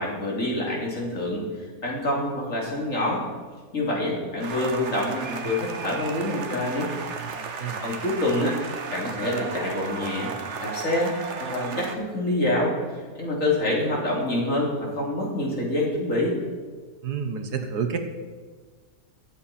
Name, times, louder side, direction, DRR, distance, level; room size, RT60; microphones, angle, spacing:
voice 1, 0.0-1.4 1.8-3.2 3.7-6.9 7.8-8.6 8.9-10.3 10.6-11.1 11.4-16.4, left 1 dB, 50° left, -3 dB, 3.5 m, -26 dB
sound 1, 4.4-11.9, right 5 dB, 50° right, 1.2 m, -34 dB
voice 2, 7.2-8.0 17.0-18.0, right 6 dB, 70° right, 6 dB, 1.7 m, -30 dB
23.5 x 7.9 x 4.3 m, 1.5 s
omnidirectional pair, 1.8 m